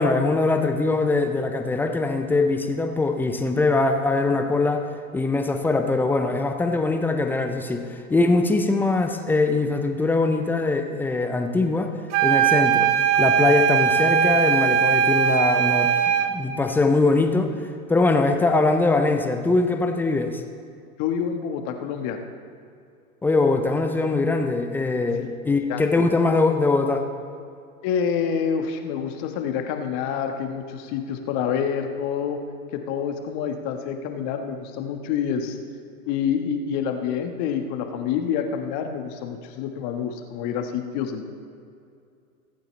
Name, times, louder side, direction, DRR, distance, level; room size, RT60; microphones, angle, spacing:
voice 1, 0.0-4.9 5.1-11.9 12.2-12.9 13.2-15.9 16.3-17.5 17.9-20.4 23.2-27.0, left 3 dB, 5° left, 5 dB, 0.4 m, -22 dB
sound 1, 12.1-16.4, right 7 dB, 55° right, 1.4 m, -20 dB
voice 2, 21.0-22.2 25.2-25.3 25.7-26.1 27.8-32.4 32.7-35.6 36.0-41.3, left 7 dB, 40° left, 5 dB, 1.4 m, -27 dB
22.0 x 8.9 x 3.2 m, 2.4 s
hypercardioid pair, 115°, 43 cm